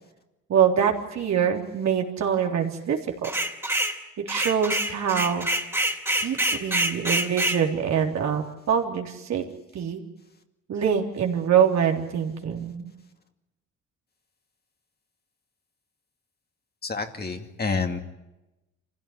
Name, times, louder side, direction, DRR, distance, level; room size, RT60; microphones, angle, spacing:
voice 1, 0.5-3.3 4.3-5.5 6.2-9.4 9.7-10.0 10.7-12.9, right 8 dB, 65° right, 1 dB, 3.6 m, -24 dB
sound 1, 3.2-4.0 4.3-7.6, right 1 dB, 10° right, 3.2 m, -26 dB
voice 2, 16.8-18.0, left 4 dB, 30° left, 5 dB, 2.5 m, -28 dB
25.5 x 16.0 x 9.9 m, 1.0 s
cardioid pair, 90°, 30 cm